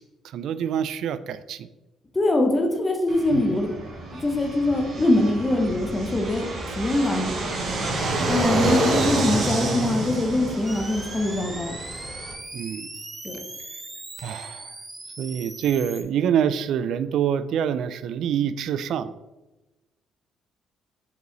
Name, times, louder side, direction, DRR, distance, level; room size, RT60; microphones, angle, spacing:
voice 1, 0.2-1.7 3.3-3.4 8.5-8.9 12.5-13.0 14.2-14.7 15.2-19.1, right 8 dB, 70° right, 14 dB, 0.3 m, -26 dB
voice 2, 2.1-3.7 4.2-6.5 6.8-7.3 8.3-11.7 13.2-13.4, left 2 dB, 20° left, 1 dB, 0.8 m, -23 dB
Fixed-wing aircraft airplane, 3.1-12.3, right 2 dB, 50° right, 1.2 m, -28 dB
sound 1, 10.7-16.0, right 2 dB, 20° right, 0.9 m, -39 dB
5.2 x 4.8 x 3.9 m, 1.0 s
cardioid pair, 125°, 0 cm